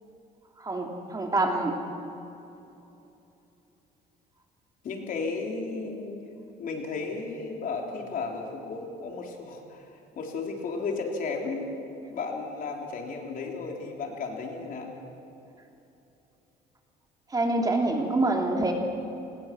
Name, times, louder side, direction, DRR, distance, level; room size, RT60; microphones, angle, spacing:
voice 1, 0.6-1.8 17.3-18.7, right 2 dB, 20° right, 2 dB, 2.8 m, -26 dB
voice 2, 4.8-6.2 6.6-11.6 12.1-14.9, left 4 dB, 55° left, 1 dB, 3.8 m, -34 dB
26.0 x 20.0 x 6.2 m, 2.9 s
cardioid pair, 110°, 17 cm